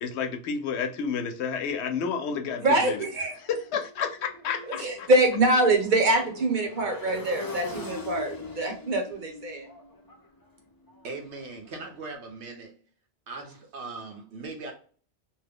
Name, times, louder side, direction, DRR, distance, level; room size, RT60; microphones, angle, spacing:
voice 1, 0.0-3.0 3.5-5.1, left 6 dB, 80° left, 0.9 m, -30 dB
Motorcycle, 2.0-11.9, left 3 dB, 30° left, 0.4 m, -43 dB
voice 2, 2.6-3.4 4.8-9.7, right 2 dB, 50° right, 0.8 m, -24 dB
voice 3, 11.0-12.7 13.3-14.7, right 3 dB, 80° right, 1.1 m, -39 dB
2.9 x 2.2 x 3.4 m
omnidirectional pair, 1.1 m